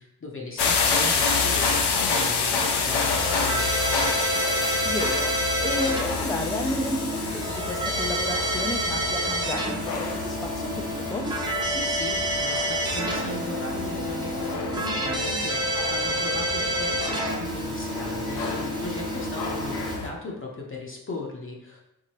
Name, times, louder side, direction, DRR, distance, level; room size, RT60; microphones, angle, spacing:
voice 1, 0.0-4.1 11.6-21.8, left 2 dB, 30° left, -1 dB, 0.8 m, -37 dB
sound 1, 0.6-20.1, left 4 dB, 80° left, 0.7 m, -29 dB
Keyboard (musical), 2.9-20.0, right 1 dB, 10° right, 0.8 m, -29 dB
voice 2, 4.8-11.2, left 1 dB, 10° left, 4 dB, 0.4 m, -32 dB
4.6 x 3.9 x 2.9 m, 0.84 s
wide cardioid pair, 120°, 39 cm